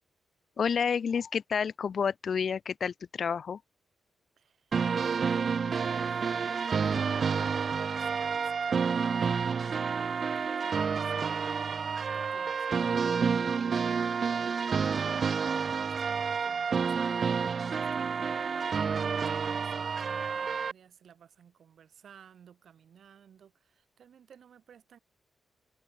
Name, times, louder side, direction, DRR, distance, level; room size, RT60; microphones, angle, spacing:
voice 1, 0.6-3.6, left 6 dB, 45° left, 0.5 m, -30 dB
voice 2, 4.4-25.0, right 8 dB, 65° right, 2.9 m, -56 dB
sound 1, 4.7-20.7, right 6 dB, 40° right, 0.6 m, -29 dB
open air
wide cardioid pair, 160°, 0 cm